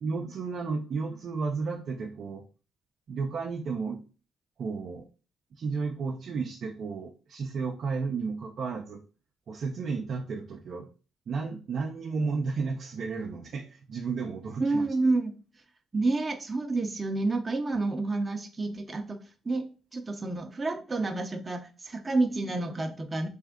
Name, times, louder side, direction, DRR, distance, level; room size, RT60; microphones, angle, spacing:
voice 1, 0.0-2.4 3.1-4.0 4.6-5.0 5.6-9.0 9.5-10.9 11.3-14.8, right 4 dB, 60° right, 0 dB, 0.6 m, -33 dB
voice 2, 14.6-15.3 15.9-19.2 19.4-19.7 19.9-23.3, right 3 dB, 25° right, 4 dB, 0.7 m, -29 dB
3.5 x 3.3 x 3.7 m, 0.34 s
cardioid pair, 90°, 0 cm